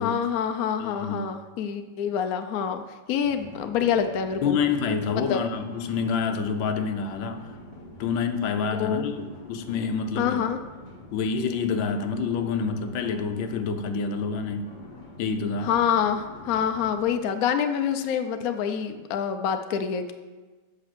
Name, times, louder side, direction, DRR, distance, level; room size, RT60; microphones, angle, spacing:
voice 1, 0.0-2.8 3.1-4.6 5.3-5.4 8.7-9.1 10.2-10.6 15.6-20.1, left 8 dB, 65° left, 7 dB, 0.9 m, -26 dB
voice 2, 0.8-1.2 4.4-7.5 8.0-10.5 11.1-14.7 15.2-15.7, left 5 dB, 80° left, 8 dB, 1.5 m, -27 dB
sound 1, 3.2-17.2, left 1 dB, 30° left, 1.0 m, -45 dB
8.2 x 6.0 x 6.0 m, 1.3 s
omnidirectional pair, 2.1 m